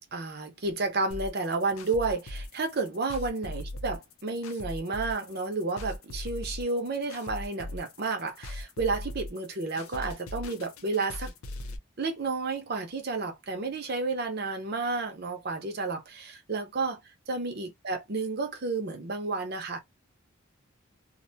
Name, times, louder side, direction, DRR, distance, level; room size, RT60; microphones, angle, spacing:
voice 1, 0.1-11.3 12.0-17.0 17.3-19.8, right 3 dB, 50° right, 0.7 m, -31 dB
sound 1, 1.1-11.8, left 1 dB, 85° left, 0.5 m, -39 dB
2.6 x 2.2 x 2.7 m
head